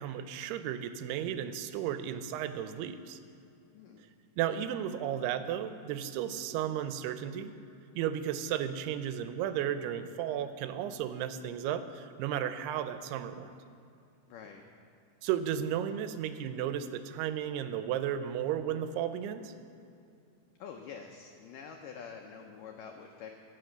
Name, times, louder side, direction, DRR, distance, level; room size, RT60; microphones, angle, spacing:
voice 1, 0.0-3.2 4.4-7.5 8.0-13.5 15.2-19.5, right 10 dB, 85° right, 10 dB, 2.6 m, -34 dB
voice 2, 3.7-4.1 6.5-6.7 14.3-14.6 20.6-23.4, left 6 dB, 85° left, 3 dB, 1.9 m, -47 dB
17.0 x 5.9 x 7.8 m, 2.5 s
omnidirectional pair, 4.7 m